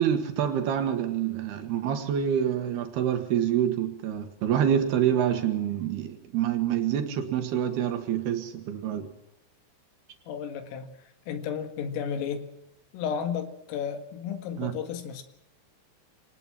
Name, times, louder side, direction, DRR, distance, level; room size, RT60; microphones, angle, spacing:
voice 1, 0.0-9.1 14.6-14.7, right 9 dB, 65° right, 2.9 m, -27 dB
voice 2, 10.3-10.9 11.3-12.5 12.9-15.2, left 7 dB, 80° left, 4.4 m, -33 dB
24.0 x 19.0 x 6.0 m
omnidirectional pair, 5.9 m